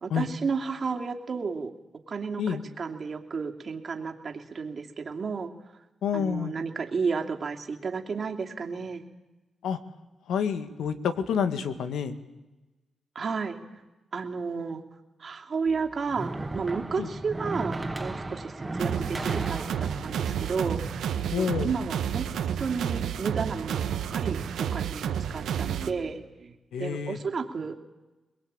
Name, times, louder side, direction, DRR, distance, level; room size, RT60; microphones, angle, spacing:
voice 1, 0.0-1.7 2.1-5.5 6.1-9.0 13.1-13.6 14.1-14.8 15.2-21.1 21.3-22.3 22.6-26.5 26.8-27.7, right 5 dB, 50° right, 3 dB, 2.7 m, -32 dB
voice 2, 6.0-6.5 9.6-9.8 10.3-12.1 17.0-17.1 21.3-21.8 26.7-27.2, left 7 dB, 85° left, 10 dB, 1.8 m, -28 dB
sound 1, 15.7-21.8, right 2 dB, 20° right, 2.1 m, -36 dB
sound 2, 18.8-25.9, right 8 dB, 85° right, 1.5 m, -30 dB
23.5 x 21.5 x 8.9 m, 1.1 s
cardioid pair, 70°, 0 cm